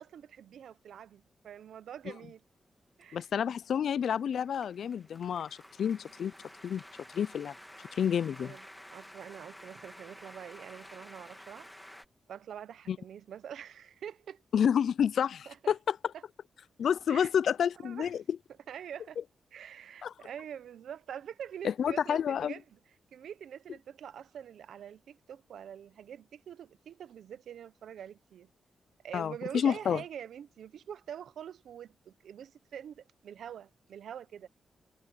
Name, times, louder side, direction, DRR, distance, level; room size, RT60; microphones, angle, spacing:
voice 1, 0.0-2.4 3.0-3.3 8.4-8.6 8.9-11.7 12.3-14.4 15.5-15.7 16.1-16.2 17.1-17.3 17.8-18.1 18.7-19.2 19.5-22.8 23.1-28.5 29.0-34.5, right 9 dB, 80° right, 0.8 m, -45 dB
sound 1, 2.8-12.1, equal, 5° left, 1.6 m, -52 dB
voice 2, 3.1-6.3 6.6-6.8 7.1-7.5 7.9-8.6 12.9-13.0 14.5-16.0 16.8-18.2 20.0-20.1 21.6-22.5 29.1-30.0, left 8 dB, 70° left, 0.4 m, -29 dB
wide cardioid pair, 130°, 0 cm